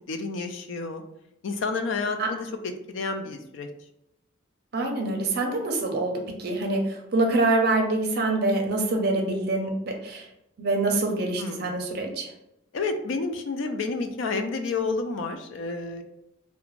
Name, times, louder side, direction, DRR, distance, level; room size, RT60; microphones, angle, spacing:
voice 1, 0.1-1.0 1.4-3.7 11.4-11.7 12.7-16.0, left 3 dB, 65° left, 7 dB, 0.3 m, -30 dB
voice 2, 4.7-6.8 7.1-10.2 10.6-12.3, right 2 dB, 50° right, 2 dB, 0.5 m, -25 dB
2.4 x 2.1 x 3.0 m, 0.83 s
head